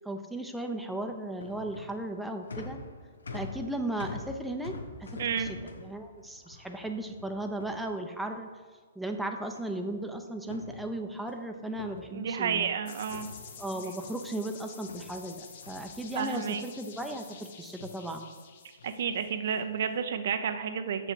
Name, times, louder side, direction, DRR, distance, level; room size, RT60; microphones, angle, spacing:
voice 1, 0.0-2.8 3.3-4.7 5.0-8.5 9.0-12.7 13.6-18.3, right 1 dB, 5° right, 4 dB, 0.6 m, -36 dB
sound 1, 0.9-8.4 9.5-10.0 10.3-12.8 13.1-14.3 14.8-16.5 16.9-17.4 17.7-18.1 18.8-19.1 19.7-20.0, left 3 dB, 80° left, 0.8 m, -46 dB
voice 2, 5.2-5.5 12.1-13.3 16.1-16.6 18.8-21.1, right 7 dB, 60° right, 9 dB, 0.5 m, -31 dB
sound 2, 12.9-19.6, left 6 dB, 55° left, 1.0 m, -49 dB
6.6 x 6.2 x 4.5 m, 1.5 s
hypercardioid pair, 130°, 0 cm